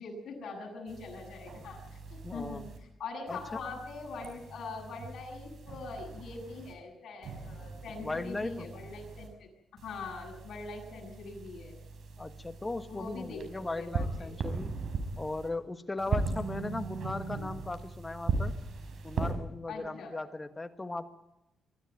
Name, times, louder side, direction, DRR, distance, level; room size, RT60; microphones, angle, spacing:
voice 1, 0.0-2.6 3.0-9.5 9.8-11.8 12.9-14.3 19.7-20.1, left 3 dB, 65° left, 0 dB, 7.9 m, -43 dB
sound 1, 0.9-2.8 3.3-6.7 7.2-9.3 9.8-15.5 16.0-19.3, right 4 dB, 70° right, 5.5 m, -39 dB
voice 2, 2.2-2.7 3.3-3.6 8.0-8.7 12.2-14.8 15.2-18.5 19.0-21.1, left 2 dB, 20° left, 9 dB, 1.6 m, -37 dB
23.5 x 13.5 x 9.5 m, 0.90 s
cardioid pair, 115°, 0 cm